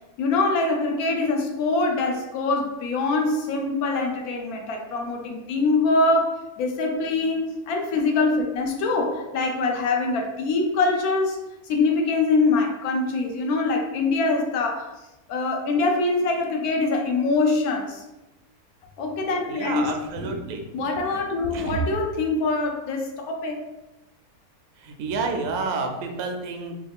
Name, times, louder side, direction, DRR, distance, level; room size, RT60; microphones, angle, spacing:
voice 1, 0.2-11.4 11.7-14.9 15.3-18.0 19.0-19.9 20.2-20.5 20.7-23.6, left 3 dB, 80° left, 3 dB, 1.1 m, -24 dB
voice 2, 19.5-20.6 21.5-21.8 24.8-26.7, right 4 dB, 75° right, 3 dB, 1.0 m, -29 dB
3.3 x 2.3 x 3.4 m, 0.98 s
omnidirectional pair, 1.6 m